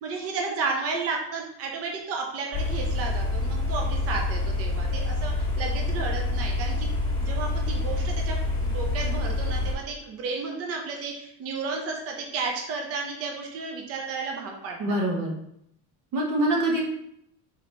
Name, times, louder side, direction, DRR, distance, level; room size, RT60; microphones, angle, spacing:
voice 1, 0.0-6.9 7.2-15.0, right 4 dB, 40° right, 1 dB, 0.7 m, -33 dB
sound 1, 2.5-9.7, left 2 dB, 10° left, 1.4 m, -27 dB
voice 2, 14.8-15.4 16.1-16.8, right 1 dB, 55° right, -1 dB, 1.0 m, -24 dB
3.9 x 2.8 x 3.2 m, 0.74 s
cardioid pair, 145°, 36 cm